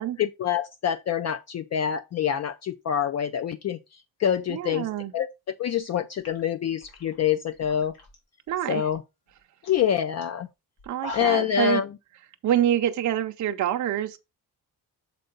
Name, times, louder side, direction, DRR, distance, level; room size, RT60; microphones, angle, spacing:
voice 1, 0.0-5.3 5.6-7.9 8.7-9.0 9.7-10.5 11.1-11.9, left 9 dB, 45° left, 0.4 m, -26 dB
voice 2, 4.5-5.1 8.5-8.8 10.8-11.8 12.4-14.2, right 11 dB, 50° right, 0.6 m, -26 dB
sound 1, 5.8-5.9 6.2-8.2 8.5-8.9 9.3-9.4 9.6-9.8 10.2-10.3 10.8-11.6, left 1 dB, 75° left, 2.8 m, -42 dB
6.7 x 4.5 x 3.8 m
wide cardioid pair, 170°, 38 cm